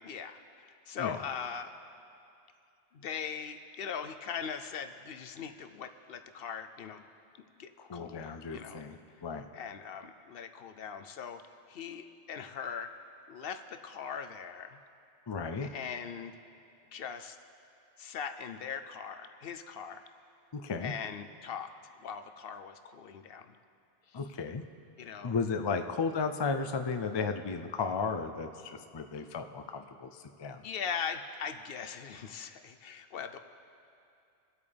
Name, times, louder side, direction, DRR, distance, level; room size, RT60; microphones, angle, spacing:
voice 1, 0.0-1.7 2.9-7.0 7.6-8.8 9.5-11.4 11.7-12.9 13.3-14.8 15.6-16.3 16.9-17.4 18.0-20.1 20.8-21.7 22.0-23.6 24.1-24.2 25.0-25.3 30.6-33.4, left 7 dB, 60° left, 8 dB, 0.7 m, -40 dB
voice 2, 7.8-9.5 15.3-15.7 20.5-20.9 24.1-24.6 25.2-30.6, left 5 dB, 45° left, 7 dB, 0.3 m, -34 dB
23.5 x 8.6 x 3.4 m, 2.6 s
omnidirectional pair, 1.2 m